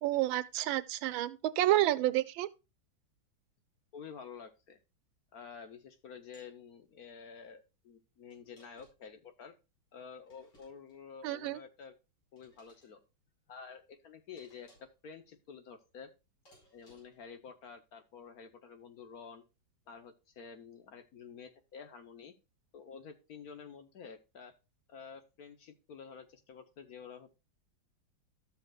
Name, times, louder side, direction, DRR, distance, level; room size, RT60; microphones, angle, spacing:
voice 1, 0.0-2.5 11.2-11.6, right 15 dB, 90° right, 1.4 m, -29 dB
voice 2, 3.9-4.8 5.3-9.5 9.9-11.9 12.3-13.0 13.5-16.1 16.7-19.4 19.9-22.3 22.7-24.6 24.9-27.4, left 6 dB, 60° left, 1.2 m, -50 dB
sound 1, 6.3-6.6 8.3-9.1 10.3-11.0 12.4-12.9 14.4-15.0 16.5-17.3, equal, 90° left, 5.6 m, -64 dB
13.0 x 7.1 x 2.4 m
omnidirectional pair, 2.1 m